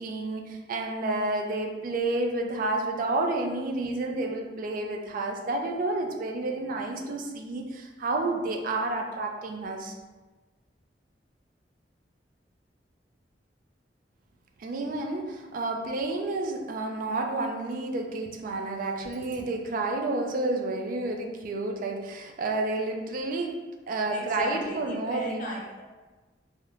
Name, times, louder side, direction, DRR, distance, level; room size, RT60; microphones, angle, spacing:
voice 1, 0.0-9.9 14.6-23.5 23.9-25.4, right 2 dB, 50° right, 2 dB, 0.3 m, -30 dB
voice 2, 24.1-25.8, left 1 dB, 45° left, -2 dB, 0.5 m, -35 dB
3.0 x 2.1 x 2.4 m, 1.2 s
head